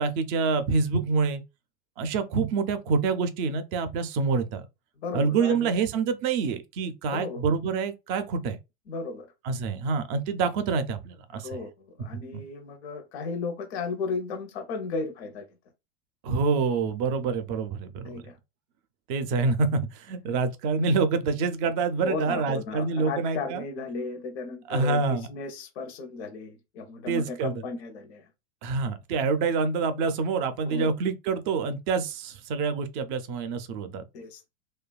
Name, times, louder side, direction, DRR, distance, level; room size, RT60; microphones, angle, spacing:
voice 1, 0.0-1.4 2.0-4.7 5.1-8.6 9.4-11.6 16.2-18.3 19.1-23.6 24.7-25.3 27.1-27.6 28.6-34.0, right 4 dB, 35° right, 0.4 m, -26 dB
voice 2, 5.0-5.9 7.1-7.4 8.9-9.3 11.3-15.5 18.0-18.3 22.0-28.3 30.7-30.9 34.1-34.5, left 4 dB, 85° left, 0.8 m, -35 dB
2.9 x 2.2 x 2.3 m
supercardioid pair, 150°, 32 cm